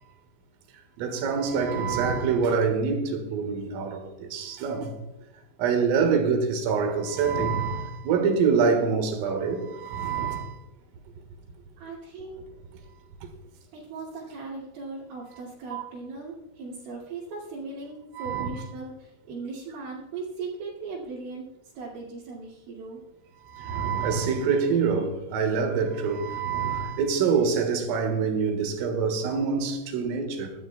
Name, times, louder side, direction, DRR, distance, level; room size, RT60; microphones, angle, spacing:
voice 1, 1.0-4.9 5.6-10.6 15.7-15.8 18.2-18.5 23.5-30.5, right 5 dB, 90° right, 4.2 m, -25 dB
voice 2, 11.8-12.4 13.7-21.5 21.8-23.0, right 3 dB, 70° right, 4.7 m, -38 dB
20.5 x 12.5 x 2.3 m
omnidirectional pair, 5.8 m